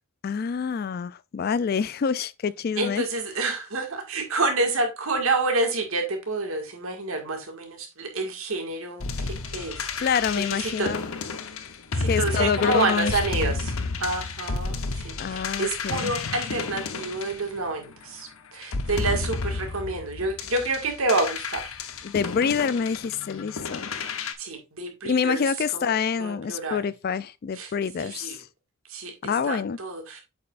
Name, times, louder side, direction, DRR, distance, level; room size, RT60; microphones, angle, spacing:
voice 1, 0.2-3.0 10.0-11.0 12.1-13.2 15.2-16.1 22.0-24.0 25.0-28.5 29.2-29.8, left 6 dB, 45° left, 0.3 m, -26 dB
voice 2, 2.8-9.1 9.4-9.9 10.3-10.9 11.9-13.7 14.0-21.6 24.4-25.4 25.7-25.9 26.2-26.9 27.5-27.7 28.0-28.4 28.9-30.2, right 3 dB, 75° right, 1.9 m, -28 dB
sound 1, 9.0-18.0 18.6-24.3, left 4 dB, 75° left, 0.8 m, -31 dB
8.0 x 5.4 x 2.5 m
head